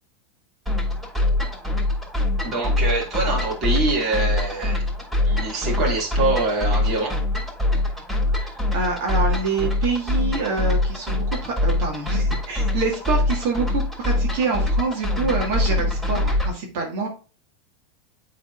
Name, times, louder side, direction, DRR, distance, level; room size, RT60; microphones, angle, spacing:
sound 1, 0.7-16.5, left 2 dB, 15° right, 3.4 m, -24 dB
voice 1, 2.4-4.8 5.3-7.2, right 2 dB, 35° right, 2.5 m, -24 dB
voice 2, 8.4-17.1, right 4 dB, 60° right, 1.9 m, -26 dB
9.4 x 4.0 x 2.5 m
supercardioid pair, 135°, 0 cm